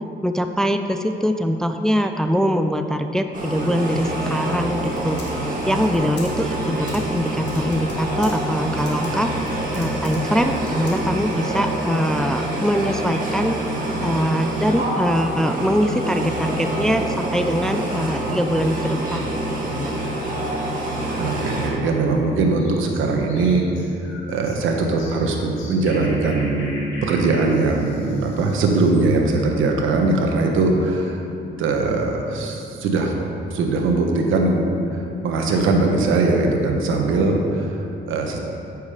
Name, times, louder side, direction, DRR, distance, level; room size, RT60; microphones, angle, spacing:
voice 1, 0.2-5.2 5.7-9.3 9.7-13.6 14.0-19.4 19.7-19.9, equal, 5° left, 6 dB, 0.4 m, -22 dB
sound 1, 3.3-21.7, right 1 dB, 45° right, 2.0 m, -26 dB
Typing, 3.9-11.4, left 1 dB, 60° left, 2.0 m, -41 dB
voice 2, 21.2-23.6 24.3-31.2 31.6-33.1 33.5-38.4, right 3 dB, 85° right, 2 dB, 1.2 m, -21 dB
sound 2, 22.5-29.1, left 1 dB, 85° left, 2.0 m, -40 dB
8.6 x 6.5 x 4.9 m, 2.8 s
cardioid pair, 90°, 20 cm